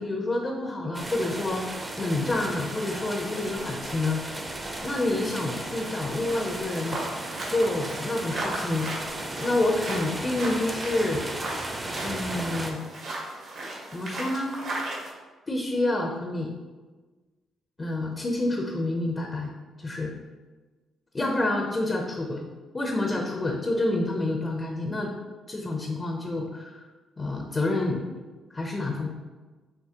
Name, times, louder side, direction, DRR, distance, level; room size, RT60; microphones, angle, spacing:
voice 1, 0.0-4.2 4.8-7.0 7.5-8.9 9.4-11.2 12.0-12.8 13.9-14.5 15.5-16.5 17.8-19.5 19.8-20.1 21.1-22.5 22.7-25.1 25.5-26.8 27.2-28.0 28.5-29.1, left 2 dB, 30° left, 1 dB, 0.6 m, -28 dB
sound 1, 0.9-12.7, right 1 dB, 20° right, 0.6 m, -35 dB
sound 2, 6.3-15.1, right 2 dB, 65° right, 1.3 m, -36 dB
5.8 x 2.9 x 2.8 m, 1.3 s
cardioid pair, 90°, 0 cm